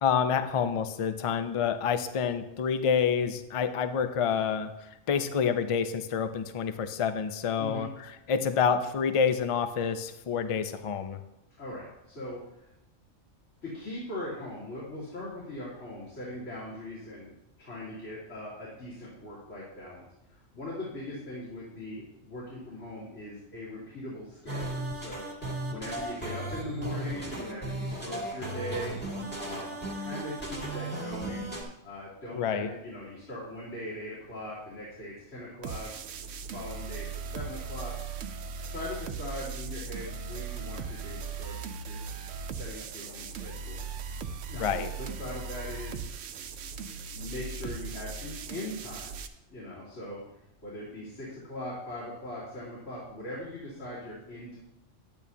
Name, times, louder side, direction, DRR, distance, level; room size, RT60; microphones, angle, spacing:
voice 1, 0.0-11.2 32.3-32.7 44.5-44.9, left 7 dB, 50° left, 9 dB, 0.4 m, -28 dB
voice 2, 11.6-12.7 13.6-17.3 17.6-25.3 25.7-29.0 29.3-31.5 31.8-35.9 36.5-38.2 38.7-41.6 41.8-42.1 42.4-43.8 44.4-46.3 47.1-49.1 49.5-50.2 50.6-54.6, left 1 dB, 80° left, -10 dB, 3.2 m, -40 dB
sound 1, 24.5-31.6, right 1 dB, 10° left, 1.7 m, -36 dB
sound 2, 35.6-49.3, right 5 dB, 75° right, 0.9 m, -38 dB
10.5 x 9.0 x 2.8 m, 0.88 s
omnidirectional pair, 1.3 m